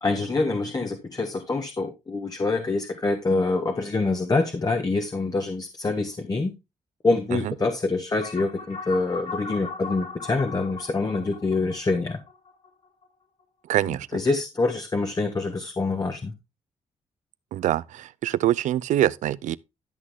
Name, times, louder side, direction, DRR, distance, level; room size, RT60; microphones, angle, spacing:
voice 1, 0.0-6.5 7.0-12.2 14.1-16.3, left 3 dB, 30° left, 1.5 m, -25 dB
sound 1, 8.2-13.0, left 4 dB, 65° left, 4.9 m, -38 dB
voice 2, 13.7-14.2 17.5-19.6, right 13 dB, 85° right, 0.5 m, -24 dB
12.5 x 6.2 x 3.5 m
cardioid pair, 80°, 12 cm